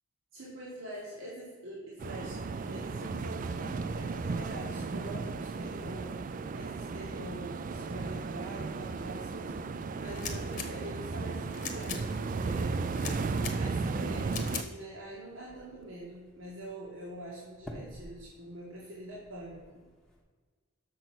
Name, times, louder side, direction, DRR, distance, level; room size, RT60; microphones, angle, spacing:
voice 1, 0.3-6.1 6.5-12.9 13.5-19.8, right 1 dB, 75° right, -6 dB, 2.0 m, -44 dB
sound 1, 2.0-14.6, right 4 dB, 40° right, 0.3 m, -35 dB
sound 2, 9.4-20.2, equal, 5° left, 1.1 m, -52 dB
sound 3, 10.1-10.7 11.5-12.0 12.9-13.6 14.3-14.7, left 7 dB, 40° left, 1.0 m, -39 dB
6.6 x 6.1 x 6.1 m, 1.5 s
head